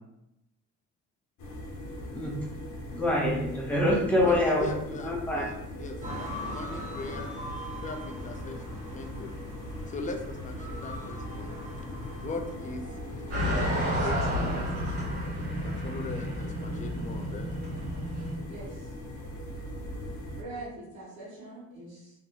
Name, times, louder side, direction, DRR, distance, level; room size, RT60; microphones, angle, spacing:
sound 1, 1.4-20.4, left 1 dB, 70° left, 0.7 m, -40 dB
voice 1, 2.9-4.7 5.0-5.5, left 1 dB, 5° left, -5 dB, 1.0 m, -25 dB
voice 2, 4.2-6.0 6.3-7.3 7.8-9.3 9.9-11.5 12.2-12.8 13.3-13.4 13.9-15.1 15.6-17.5, left 3 dB, 25° left, 4 dB, 0.4 m, -39 dB
sound 2, 6.0-13.7, equal, 25° right, 0.9 m, -42 dB
voice 3, 6.0-6.6 18.5-18.9 20.4-22.1, right 2 dB, 65° right, -8 dB, 1.2 m, -43 dB
sound 3, 13.3-18.4, equal, 45° right, 1.5 m, -31 dB
2.7 x 2.6 x 2.2 m, 0.85 s
cardioid pair, 90°, 30 cm